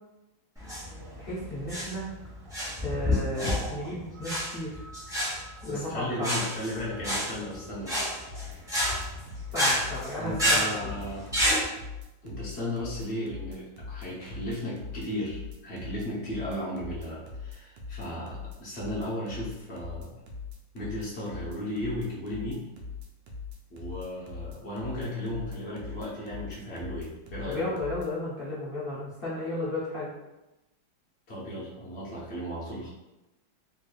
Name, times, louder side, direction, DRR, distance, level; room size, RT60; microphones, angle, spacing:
sound 1, 0.6-11.6, equal, ahead, 0.9 m, -29 dB
voice 1, 1.1-2.1 2.8-4.8 5.6-6.4 9.5-10.9 27.4-30.1, left 1 dB, 80° left, -9 dB, 0.5 m, -34 dB
voice 2, 5.7-8.1 10.2-11.2 12.2-20.1 20.7-22.6 23.7-27.7 31.3-32.9, left 1 dB, 50° left, -7 dB, 0.8 m, -35 dB
sound 2, 8.3-28.1, left 5 dB, 75° right, 1.3 m, -41 dB
3.4 x 3.0 x 2.3 m, 0.99 s
omnidirectional pair, 2.1 m